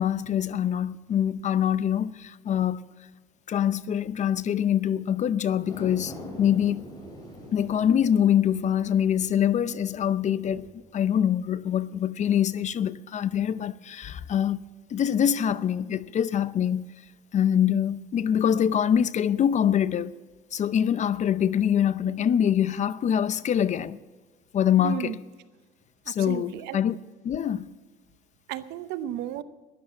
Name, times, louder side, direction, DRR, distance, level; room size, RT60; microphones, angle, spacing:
voice 1, 0.0-2.8 3.5-6.8 7.5-10.7 10.9-14.6 14.9-16.9 17.3-20.1 20.5-24.0 24.5-25.2 26.1-27.0 27.2-27.7, left 9 dB, 45° left, 0.6 m, -24 dB
sound 1, 5.6-12.1 12.5-12.6, left 1 dB, 25° left, 4.7 m, -45 dB
voice 2, 24.8-25.2 26.1-26.8 28.5-29.4, right 12 dB, 90° right, 0.8 m, -33 dB
13.0 x 11.0 x 7.6 m
cardioid pair, 110°, 17 cm